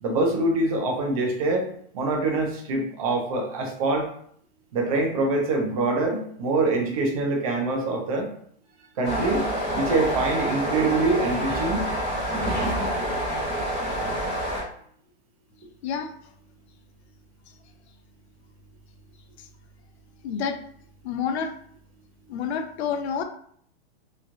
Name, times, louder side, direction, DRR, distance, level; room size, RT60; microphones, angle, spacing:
voice 1, 0.0-4.1 4.7-8.3 9.0-9.4 9.7-11.9, right 2 dB, 35° right, 0 dB, 0.6 m, -25 dB
sound 1, 9.0-14.6, equal, ahead, 0.3 m, -27 dB
voice 2, 20.2-20.6 21.0-21.5 22.3-23.2, left 7 dB, 90° left, 7 dB, 0.5 m, -28 dB
3.1 x 2.3 x 2.5 m, 0.63 s
supercardioid pair, 170°, 32 cm